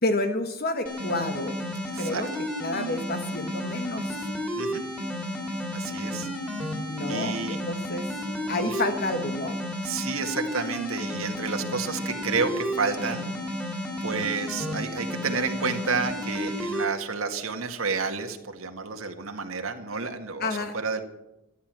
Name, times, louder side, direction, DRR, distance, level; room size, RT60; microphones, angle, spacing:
voice 1, 0.0-1.6 2.0-2.3 2.6-4.3 6.9-8.0 8.5-9.6 20.4-20.7, left 2 dB, 45° left, 6 dB, 1.2 m, -29 dB
sound 1, 0.9-16.9, equal, 5° left, 3.4 m, -32 dB
voice 2, 5.7-6.3 7.1-7.6 8.6-8.8 9.8-13.3 14.0-20.5 20.7-21.0, right 4 dB, 80° right, 4 dB, 2.0 m, -30 dB
14.0 x 11.5 x 7.6 m, 0.91 s
head